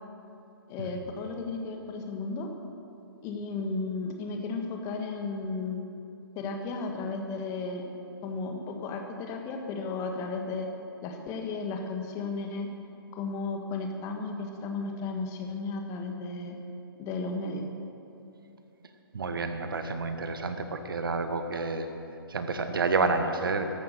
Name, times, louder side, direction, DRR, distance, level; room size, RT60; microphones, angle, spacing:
voice 1, 0.7-2.5 3.2-5.8 6.3-7.8 8.2-10.7 11.0-12.7 13.1-16.6 17.0-17.6, left 3 dB, 25° left, 3 dB, 1.6 m, -34 dB
voice 2, 19.1-21.9 22.3-23.6, right 3 dB, 65° right, 8 dB, 1.4 m, -29 dB
14.5 x 12.0 x 6.7 m, 2.8 s
figure-of-eight pair, 125°, 13 cm